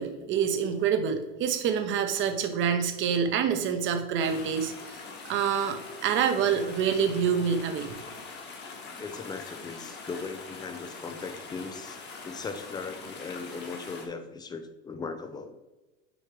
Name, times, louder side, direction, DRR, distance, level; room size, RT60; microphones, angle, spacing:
voice 1, 0.0-7.9, right 7 dB, 40° right, 7 dB, 0.8 m, -27 dB
sound 1, 4.2-14.1, left 4 dB, 35° left, 1.2 m, -43 dB
voice 2, 9.0-12.0 12.2-15.6, left 4 dB, 15° left, 9 dB, 0.3 m, -38 dB
6.4 x 4.5 x 3.3 m, 1.1 s
supercardioid pair, 125°, 31 cm